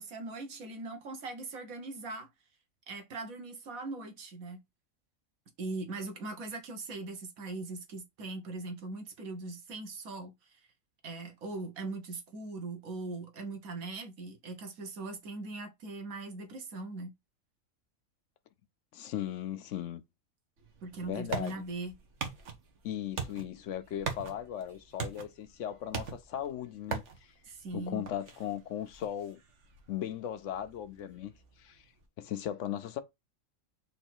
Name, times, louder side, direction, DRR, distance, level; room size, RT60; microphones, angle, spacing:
voice 1, 0.0-2.3 2.9-4.6 5.6-10.3 11.0-17.1 20.8-21.9 27.4-28.0, right 3 dB, 85° right, 1.5 m, -40 dB
voice 2, 18.9-20.0 21.0-21.5 22.8-27.0 27.7-29.4 29.9-31.3 31.6-31.8 32.2-33.0, left 10 dB, 70° left, 0.9 m, -37 dB
sound 1, 20.6-32.1, right 6 dB, 60° right, 1.2 m, -43 dB
4.0 x 3.0 x 4.5 m
omnidirectional pair, 1.4 m